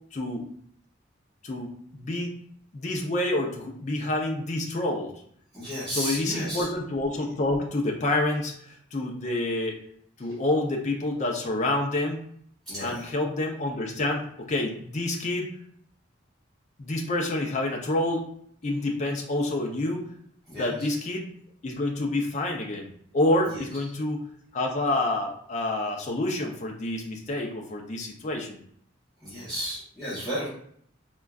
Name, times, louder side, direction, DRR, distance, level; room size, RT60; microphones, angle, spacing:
voice 1, 0.1-0.4 1.4-2.3 2.7-5.1 5.9-9.8 10.2-12.2 12.8-15.5 16.8-18.2 18.6-20.0 20.5-21.3 21.6-24.2 24.5-28.6, left 2 dB, 35° left, 0 dB, 0.4 m, -28 dB
voice 2, 5.5-6.7 12.7-13.1 20.5-20.9 23.4-23.6 29.2-30.5, equal, ahead, -14 dB, 1.0 m, -33 dB
3.5 x 2.2 x 2.3 m, 0.64 s
head